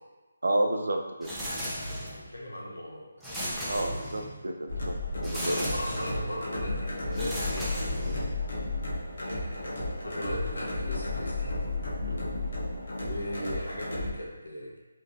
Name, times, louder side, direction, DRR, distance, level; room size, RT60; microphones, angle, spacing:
voice 1, 0.4-1.3 3.7-5.7 8.0-8.2 12.0-12.3, right 1 dB, 75° right, 3 dB, 0.3 m, -31 dB
sound 1, 1.2-2.3 3.2-4.4 5.2-6.3 7.1-8.4, equal, 5° right, 0.5 m, -35 dB
voice 2, 2.0-3.1 3.5-3.7 5.3-7.7 9.2-11.5 13.0-14.8, equal, 90° left, -3 dB, 0.8 m, -37 dB
Pulsing Rhythm, 4.7-14.1, left 2 dB, 60° left, 0.8 m, -33 dB
3.6 x 2.6 x 2.4 m, 1.2 s
figure-of-eight pair, 155°, 0 cm